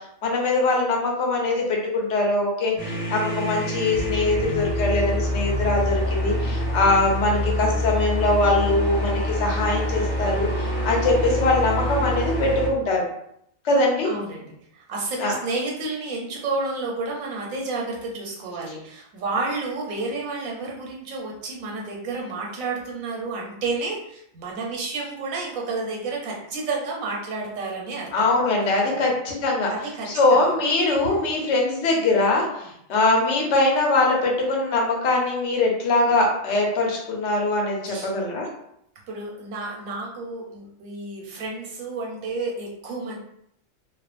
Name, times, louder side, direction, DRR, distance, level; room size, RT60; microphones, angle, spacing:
voice 1, 0.2-13.1 13.6-14.1 15.2-15.4 28.1-29.7 30.1-38.5, left 2 dB, 65° left, -1 dB, 1.0 m, -22 dB
sound 1, 2.8-12.7, left 1 dB, 15° left, 1.2 m, -26 dB
voice 2, 14.0-28.3 28.9-29.1 29.7-30.4 31.3-31.4 32.6-32.7 37.9-38.1 39.1-43.2, right 3 dB, 90° right, -1 dB, 1.1 m, -31 dB
2.4 x 2.4 x 2.4 m, 0.73 s
omnidirectional pair, 1.4 m